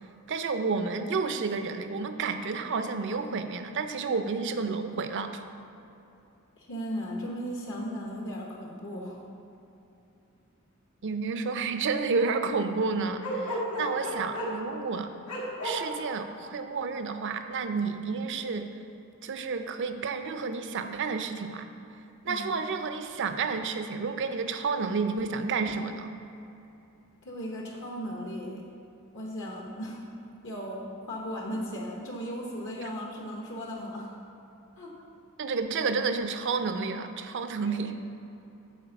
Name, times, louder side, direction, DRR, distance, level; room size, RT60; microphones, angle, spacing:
voice 1, 0.3-5.4 11.0-15.1 15.6-18.7 19.2-21.7 22.2-26.1 35.4-38.0, right 4 dB, 55° right, 8 dB, 0.5 m, -30 dB
voice 2, 6.6-9.2 22.3-22.5 27.2-28.7 29.1-30.0 30.4-34.2 34.8-34.9 37.6-37.9, equal, 60° left, -2 dB, 1.0 m, -36 dB
Bark, 13.2-14.6 15.3-15.8, equal, 80° left, 1.8 m, -32 dB
8.6 x 4.4 x 6.9 m, 2.8 s
head